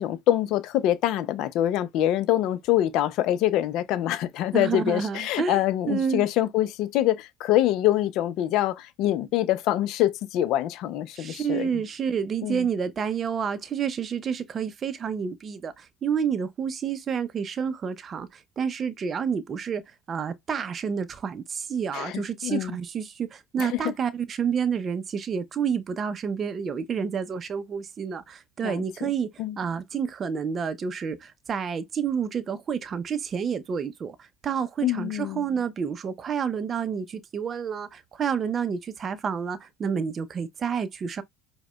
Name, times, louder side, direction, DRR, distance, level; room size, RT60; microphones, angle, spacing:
voice 1, 0.0-11.7 12.4-12.7 21.9-22.8 23.6-23.8 28.6-28.8 29.4-29.6 34.8-35.5, left 13 dB, 60° left, 0.5 m, -25 dB
voice 2, 4.5-6.2 11.1-29.3 29.6-41.2, right 7 dB, 35° right, 0.5 m, -29 dB
4.7 x 2.1 x 2.2 m
supercardioid pair, 100°, 0 cm